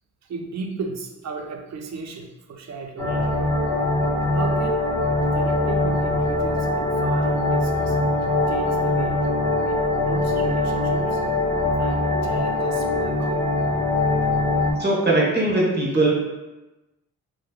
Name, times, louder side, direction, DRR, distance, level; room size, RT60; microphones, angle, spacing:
voice 1, 0.2-3.4 4.3-4.9 5.3-8.0 8.5-9.3 9.6-9.8 10.0-11.2 11.8-13.5, right 4 dB, 50° right, 3 dB, 0.5 m, -35 dB
sound 1, 3.0-14.7, left 2 dB, 10° left, 0.9 m, -22 dB
voice 2, 14.8-16.1, right 2 dB, 25° right, -3 dB, 1.0 m, -20 dB
3.1 x 2.0 x 2.3 m, 1.1 s
supercardioid pair, 45°, 37 cm